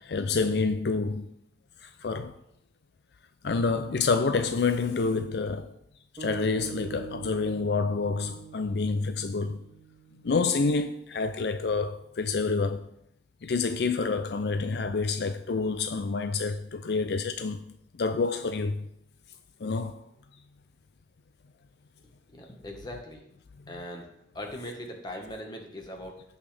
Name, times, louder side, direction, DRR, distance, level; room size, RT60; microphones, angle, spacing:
voice 1, 0.0-1.3 1.8-2.4 3.4-5.7 6.2-9.6 10.2-12.9 13.4-18.9 19.6-20.1, left 4 dB, 70° left, 0.4 m, -28 dB
sound 1, 6.2-10.5, right 6 dB, 30° right, 1.9 m, -43 dB
voice 2, 22.3-23.2 23.7-26.2, left 1 dB, 25° left, 1.4 m, -40 dB
16.5 x 5.6 x 3.4 m
head